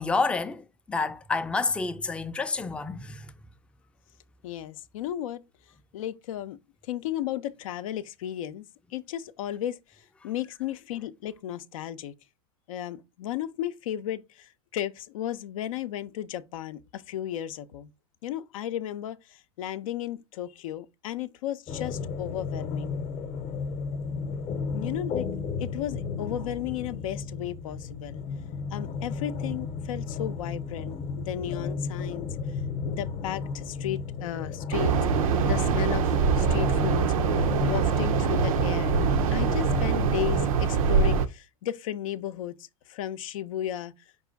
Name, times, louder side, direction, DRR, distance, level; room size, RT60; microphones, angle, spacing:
voice 1, 0.0-3.3, left 4 dB, 5° left, 0.4 m, -29 dB
voice 2, 4.4-5.4 5.9-6.6 6.9-8.6 8.9-9.8 10.2-12.1 12.7-17.9 18.2-22.9 24.7-25.3 25.6-28.2 28.7-32.4 32.8-35.0 35.2-39.0 39.3-43.9, left 12 dB, 80° left, 0.5 m, -34 dB
sound 1, 21.7-40.5, left 5 dB, 40° left, 0.8 m, -33 dB
sound 2, 34.7-41.3, right 6 dB, 85° right, 0.6 m, -24 dB
5.3 x 2.4 x 3.9 m
hypercardioid pair, 100°, 17 cm